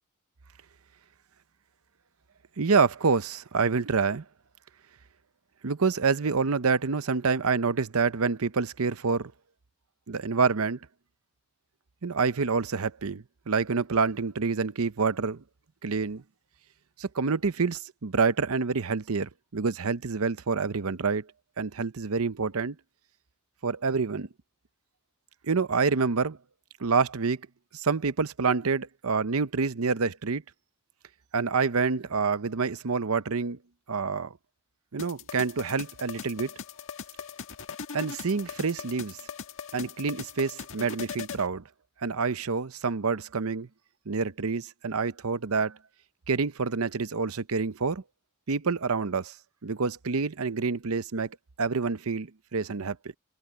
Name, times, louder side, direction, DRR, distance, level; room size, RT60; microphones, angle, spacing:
voice 1, 2.6-4.2 5.6-9.3 10.1-10.8 12.0-15.4 15.8-16.2 17.0-21.2 21.6-22.8 23.6-24.3 25.4-26.4 26.8-27.4 27.7-30.4 31.3-33.6 33.9-34.3 34.9-36.5 37.9-39.2 39.7-41.6 42.0-43.7 44.1-45.8 46.3-48.0 48.5-49.3 49.6-51.3 51.6-53.0, right 4 dB, 70° right, 0.8 m, -27 dB
sound 1, 35.0-41.5, left 6 dB, 60° left, 1.7 m, -40 dB
head